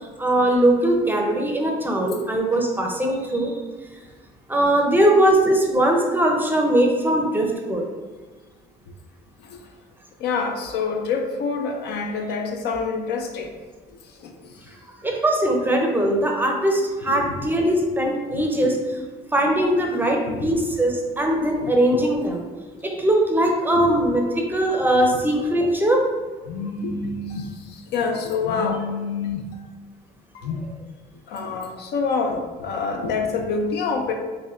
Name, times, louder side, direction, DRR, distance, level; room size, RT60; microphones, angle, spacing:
voice 1, 0.2-3.5 4.5-7.8 15.0-18.8 19.3-22.4 22.8-26.0, right 1 dB, 10° right, 1 dB, 0.5 m, -20 dB
voice 2, 10.2-13.5 14.2-14.5 15.0-15.1 17.0-17.4 18.3-18.7 20.3-20.5 21.6-22.0 23.7-23.9 24.9-25.2 26.5-29.4 30.3-30.6 31.3-34.1, left 4 dB, 75° left, 3 dB, 0.5 m, -27 dB
5.4 x 2.2 x 2.4 m, 1.4 s
cardioid pair, 110°, 17 cm